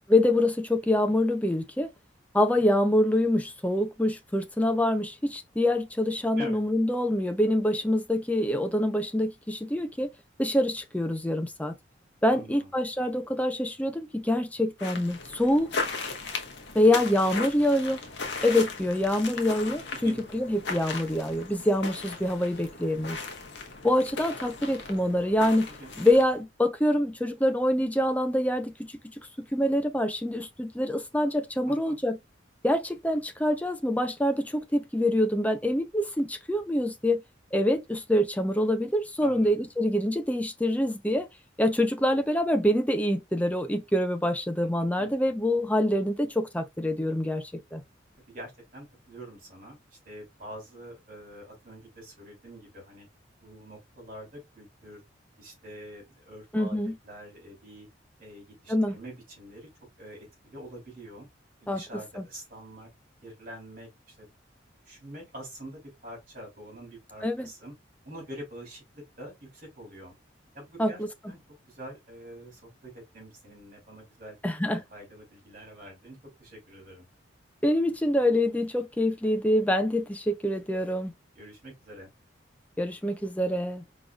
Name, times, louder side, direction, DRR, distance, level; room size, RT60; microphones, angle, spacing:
voice 1, 0.1-1.9 2.3-10.1 10.4-11.7 12.2-15.7 16.7-18.0 18.4-23.2 23.8-25.7 26.0-28.9 29.4-32.2 32.6-37.2 37.5-41.3 41.6-47.8 56.5-57.0 58.7-59.0 61.7-61.8 62.2-62.3 67.2-67.5 70.8-71.1 74.4-74.8 77.6-81.1 82.8-83.8, left 1 dB, 10° left, 0.6 m, -25 dB
voice 2, 12.3-12.7 19.9-20.2 25.8-25.9 31.7-32.0 39.2-39.7 45.0-45.1 48.3-49.8 50.0-53.1 53.4-55.0 55.4-56.8 57.0-57.9 58.2-59.7 60.0-61.3 61.6-62.9 63.2-64.3 64.8-67.7 68.0-70.1 70.5-71.0 71.3-71.4 71.7-74.4 74.6-77.1 81.3-82.1, right 1 dB, 45° right, 2.9 m, -45 dB
sound 1, 14.8-26.4, left 4 dB, 65° left, 1.2 m, -37 dB
4.7 x 4.0 x 2.4 m
head